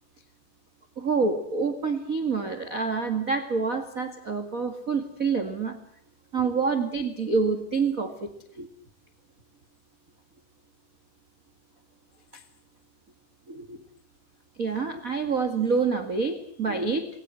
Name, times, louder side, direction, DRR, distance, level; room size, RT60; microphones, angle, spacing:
voice 1, 1.0-5.8 6.3-8.7 12.3-12.4 13.5-13.8 14.6-17.1, right 4 dB, 35° right, 8 dB, 1.5 m, -27 dB
28.5 x 21.5 x 7.8 m, 0.65 s
omnidirectional pair, 4.3 m